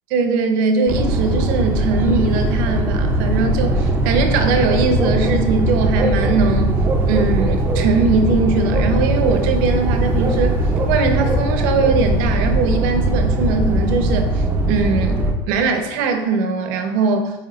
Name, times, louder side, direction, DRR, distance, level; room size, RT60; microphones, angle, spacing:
voice 1, 0.1-6.8 7.1-10.6 10.9-17.3, right 4 dB, 75° right, 5 dB, 0.6 m, -20 dB
sound 1, 0.9-15.3, right 1 dB, 20° right, 0.4 m, -19 dB
4.2 x 3.9 x 3.1 m, 1.0 s
cardioid pair, 165°, 11 cm